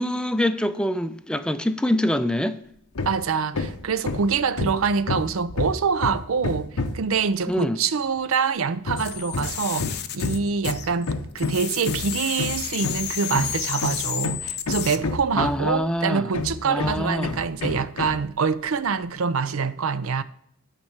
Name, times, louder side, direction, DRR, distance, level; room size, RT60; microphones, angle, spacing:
voice 1, 0.0-2.6 7.5-7.8 15.4-16.3 16.7-17.4, left 1 dB, 5° left, 0.5 m, -25 dB
Hammer, 2.9-3.2 3.5-7.1 8.8-15.8 16.3-18.3, left 3 dB, 85° left, 0.8 m, -29 dB
voice 2, 3.1-20.2, right 5 dB, 70° right, 0.5 m, -25 dB
sound 1, 9.0-11.1 11.4-15.0, left 11 dB, 50° left, 0.7 m, -31 dB
9.1 x 4.6 x 7.1 m
head